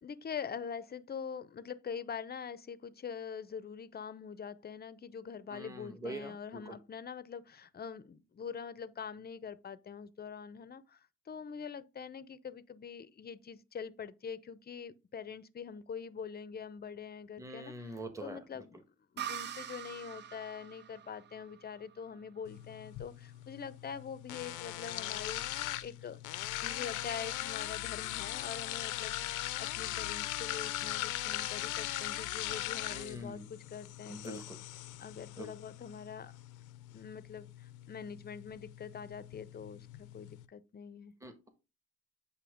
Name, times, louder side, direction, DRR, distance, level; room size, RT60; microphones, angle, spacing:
voice 1, 0.0-18.8 19.1-26.2 26.6-34.4 35.0-36.3 36.9-41.1, left 6 dB, 30° left, 0.6 m, -44 dB
voice 2, 5.5-6.6 17.4-18.4 32.9-33.5 34.1-34.6 35.4-35.5 41.2-41.5, right 1 dB, 10° right, 1.2 m, -44 dB
sound 1, 19.2-22.7, right 9 dB, 35° right, 0.5 m, -44 dB
sound 2, 22.4-40.4, left 15 dB, 85° left, 0.6 m, -40 dB
8.5 x 2.9 x 5.0 m
cardioid pair, 90°, 30 cm